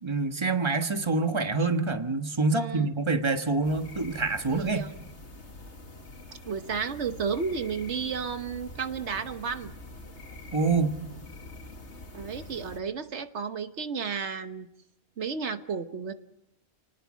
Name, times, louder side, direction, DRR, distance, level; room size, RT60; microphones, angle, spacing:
voice 1, 0.0-4.9 10.5-10.9, right 3 dB, 25° right, 6 dB, 1.5 m, -26 dB
voice 2, 2.5-2.9 4.5-4.9 6.4-9.7 12.1-14.7 15.2-16.1, right 6 dB, 80° right, 9 dB, 1.4 m, -32 dB
sound 1, 3.6-12.8, left 2 dB, 90° left, 2.4 m, -45 dB
30.0 x 19.5 x 6.3 m, 0.82 s
omnidirectional pair, 1.1 m